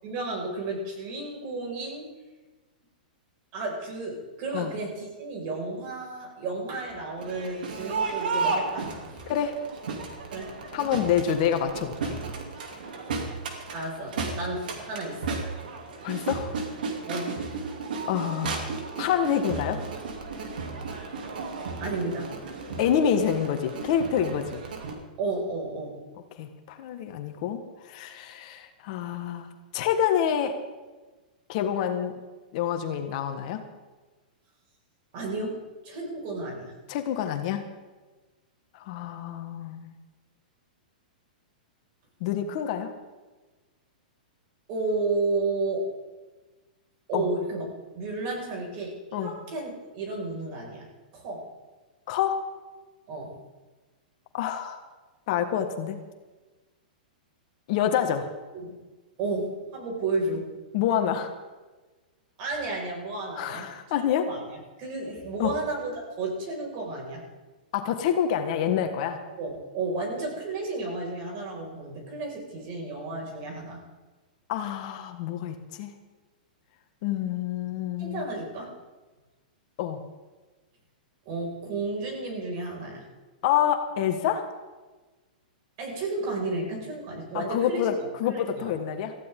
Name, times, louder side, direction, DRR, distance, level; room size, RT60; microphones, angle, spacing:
voice 1, 0.0-2.2 3.5-9.2 10.3-10.6 13.7-15.4 17.1-17.4 21.8-22.3 25.2-26.0 35.1-36.7 44.7-45.9 47.1-50.9 51.1-51.5 53.1-53.3 58.5-58.7 59.2-60.5 62.4-63.7 64.0-67.3 69.4-73.8 78.0-78.7 81.3-83.0 85.8-87.9 88.3-88.7, right 3 dB, 45° right, 0 dB, 5.9 m, -32 dB
Crowd, 7.2-24.9, right 4 dB, 80° right, 3.0 m, -34 dB
voice 2, 10.7-12.2 16.0-16.5 18.1-18.7 19.0-19.8 22.8-24.6 26.4-30.6 31.5-32.2 32.5-33.6 36.9-37.6 38.7-39.9 42.2-42.9 47.1-47.3 49.1-49.3 52.1-52.5 54.3-54.8 55.3-56.0 57.7-58.3 60.7-61.3 63.3-64.3 65.4-65.5 67.7-69.2 74.5-75.9 77.0-78.2 79.8-80.0 83.4-84.5 87.3-89.1, left 9 dB, 50° left, 6 dB, 1.6 m, -27 dB
19.5 x 15.0 x 3.9 m, 1.3 s
hypercardioid pair, 140°, 5 cm